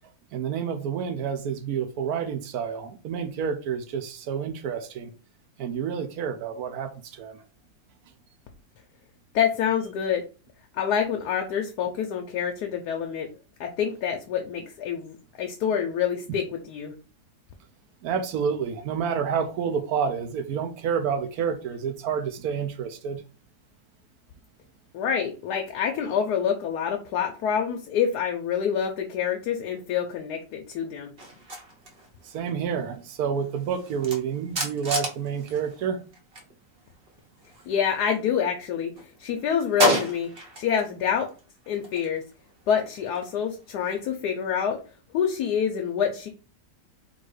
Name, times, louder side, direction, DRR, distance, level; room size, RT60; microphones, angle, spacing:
voice 1, 0.3-5.1 5.6-7.4 18.0-23.2 32.2-36.0, right 7 dB, 70° right, 1.1 m, -29 dB
voice 2, 9.3-10.2 10.8-13.3 13.6-16.9 24.9-31.1 37.7-38.9 39.2-40.3 40.6-41.3 41.7-42.2 42.7-44.8 45.1-46.3, left 8 dB, 80° left, 1.2 m, -27 dB
sound 1, 31.2-36.5 36.8-38.4 38.8-40.9 41.2-44.0, right 1 dB, 40° right, 1.2 m, -33 dB
3.8 x 2.6 x 4.8 m
omnidirectional pair, 1.7 m